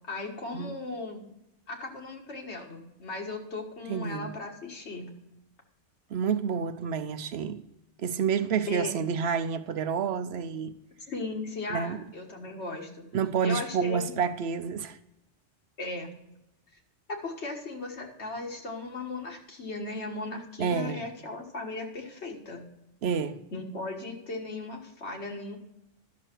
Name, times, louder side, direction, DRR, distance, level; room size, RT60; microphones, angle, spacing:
voice 1, 0.1-1.2 1.7-5.1 8.7-9.0 11.1-13.1 13.4-14.1 15.8-16.1 17.1-22.6 23.5-25.6, left 2 dB, 70° left, 1.8 m, -37 dB
voice 2, 3.9-4.3 6.1-7.6 8.0-10.7 11.7-12.0 13.1-15.0 20.6-21.0 23.0-23.4, right 6 dB, 70° right, 0.8 m, -29 dB
11.5 x 6.5 x 4.4 m
omnidirectional pair, 1.2 m